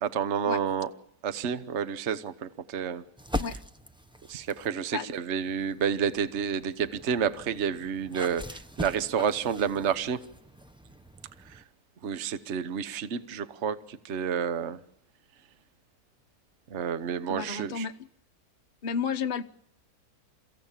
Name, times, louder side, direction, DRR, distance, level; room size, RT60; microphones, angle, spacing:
voice 1, 0.0-0.9 1.2-3.0 4.3-10.2 11.5-11.6 12.0-14.8 16.7-17.9, right 7 dB, 45° right, 1.2 m, -30 dB
sound 1, 3.2-4.8 5.4-11.6, equal, 5° right, 0.4 m, -41 dB
voice 2, 17.3-17.9 18.8-19.4, left 6 dB, 35° left, 0.9 m, -31 dB
29.5 x 16.0 x 7.4 m
omnidirectional pair, 1.8 m